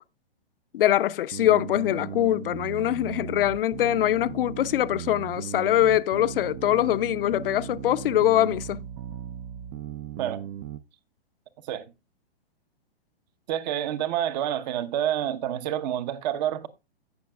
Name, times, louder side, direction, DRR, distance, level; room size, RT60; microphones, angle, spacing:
voice 1, 0.7-8.9, left 12 dB, 60° left, 0.6 m, -23 dB
sound 1, 1.3-10.8, right 10 dB, 25° right, 0.4 m, -37 dB
voice 2, 13.5-16.7, right 11 dB, 45° right, 0.9 m, -28 dB
16.5 x 5.9 x 2.2 m
hypercardioid pair, 120°, 31 cm